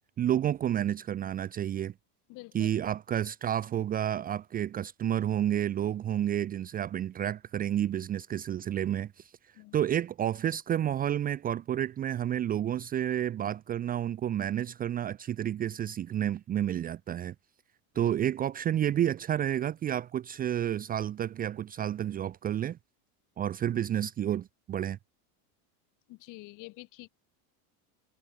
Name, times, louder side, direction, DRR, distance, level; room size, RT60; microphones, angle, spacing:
voice 1, 0.2-1.9 2.5-9.3 9.7-17.3 17.9-22.8 23.4-25.0, right 10 dB, 20° right, 0.9 m, -30 dB
voice 2, 2.3-2.7 9.5-9.8 17.9-18.1 26.1-27.1, left 22 dB, 45° left, 6.7 m, -47 dB
cardioid pair, 170°, 43 cm